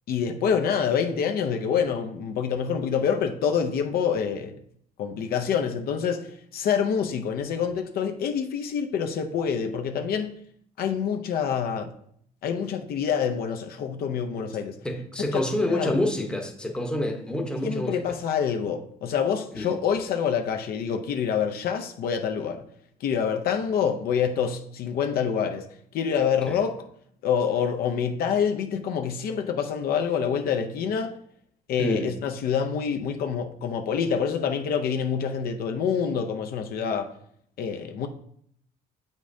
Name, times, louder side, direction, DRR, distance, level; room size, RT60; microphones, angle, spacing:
voice 1, 0.1-4.6 5.0-10.3 10.8-11.9 12.4-14.8 15.3-15.4 15.7-16.0 17.6-22.6 23.0-25.7 25.9-26.9 27.2-31.2 31.7-37.1 37.6-38.1, left 7 dB, 65° left, 0.6 m, -26 dB
voice 2, 14.8-18.1 19.6-19.7 26.5-26.6 31.8-32.1, left 1 dB, 5° left, 0.9 m, -28 dB
7.5 x 5.2 x 2.7 m
cardioid pair, 110°, 17 cm